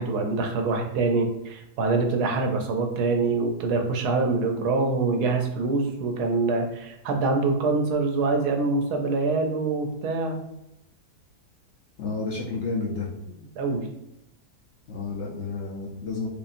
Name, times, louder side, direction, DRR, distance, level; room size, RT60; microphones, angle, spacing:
voice 1, 0.0-10.4 13.6-13.8, right 3 dB, 80° right, 3 dB, 1.2 m, -25 dB
voice 2, 12.0-13.1 14.9-16.3, left 3 dB, 60° left, -4 dB, 0.8 m, -30 dB
4.8 x 2.6 x 2.5 m, 0.83 s
omnidirectional pair, 1.7 m